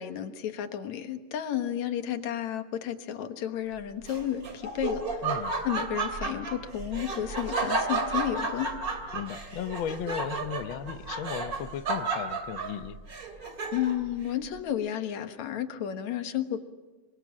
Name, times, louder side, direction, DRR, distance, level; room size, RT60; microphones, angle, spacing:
voice 1, 0.0-5.2 5.6-8.7 13.7-16.6, left 10 dB, 65° left, 8 dB, 2.6 m, -32 dB
Laughter, 4.0-14.1, right 3 dB, 30° right, 2.7 m, -32 dB
voice 2, 5.2-5.6 9.1-13.0, left 8 dB, 85° left, 11 dB, 1.1 m, -36 dB
27.0 x 23.0 x 7.4 m, 1.3 s
omnidirectional pair, 3.6 m